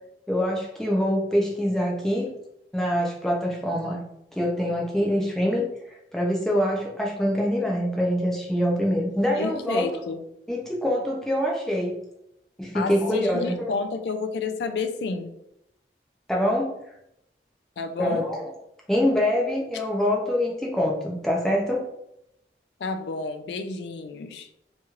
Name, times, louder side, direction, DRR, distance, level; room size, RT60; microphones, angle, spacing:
voice 1, 0.3-2.3 2.7-4.0 4.3-5.7 6.1-9.9 10.5-12.0 12.6-13.5 16.3-16.7 18.0-18.5 18.9-21.9, equal, 5° left, -3 dB, 0.5 m, -24 dB
voice 2, 9.3-10.2 12.7-15.3 17.8-18.3 22.8-24.5, left 4 dB, 75° left, 8 dB, 0.3 m, -30 dB
3.0 x 2.9 x 2.4 m, 0.80 s
head